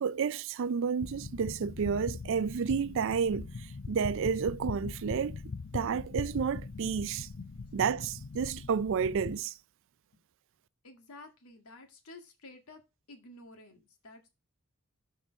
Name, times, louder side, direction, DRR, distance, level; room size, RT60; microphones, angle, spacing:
voice 1, 0.0-5.4 5.7-7.3 7.7-9.5, right 6 dB, 60° right, 0.4 m, -31 dB
sound 1, 1.0-9.4, left 4 dB, 55° left, 0.6 m, -41 dB
voice 2, 10.8-12.8 13.1-14.3, left 2 dB, 80° left, 1.9 m, -51 dB
6.6 x 5.0 x 5.7 m
head